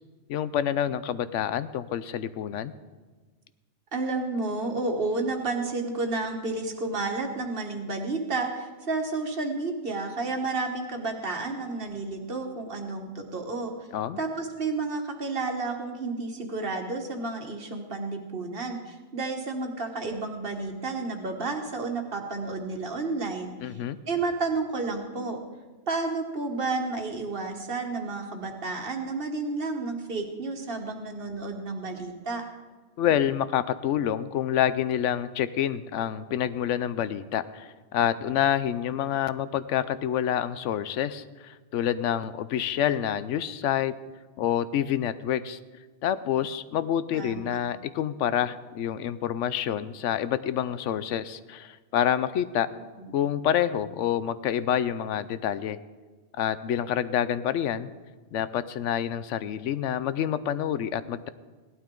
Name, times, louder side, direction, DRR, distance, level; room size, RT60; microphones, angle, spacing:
voice 1, 0.3-2.7 13.9-14.2 23.6-24.0 33.0-43.9 44.4-45.6 46.0-52.7 53.1-55.8 56.4-57.9 58.3-61.3, left 10 dB, 90° left, 14 dB, 0.9 m, -27 dB
voice 2, 3.9-13.7 14.2-23.8 24.1-25.4 25.9-32.4 47.1-47.6 53.0-53.1, right 3 dB, 50° right, 3 dB, 1.6 m, -31 dB
17.0 x 12.0 x 3.8 m, 1.3 s
omnidirectional pair, 1.2 m